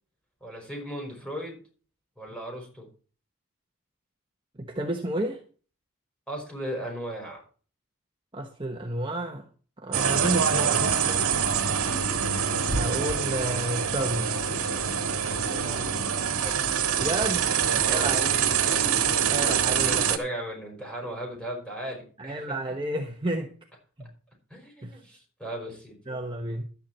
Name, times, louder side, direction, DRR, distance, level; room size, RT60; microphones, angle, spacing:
voice 1, 0.4-1.6 2.2-2.9 6.3-7.4 15.3-16.1 16.4-16.6 17.8-18.1 19.4-22.6 24.0-24.1 24.5-26.0, right 1 dB, 5° left, 5.2 m, -37 dB
voice 2, 4.6-5.4 8.3-9.5 9.8-11.2 12.7-14.4 17.0-17.5 17.8-18.8 19.3-20.0 22.2-23.5 24.0-24.1 24.8-25.0 26.1-26.7, right 1 dB, 20° right, 1.1 m, -31 dB
sound 1, 9.9-20.2, right 7 dB, 80° right, 1.7 m, -25 dB
12.0 x 9.4 x 4.4 m
head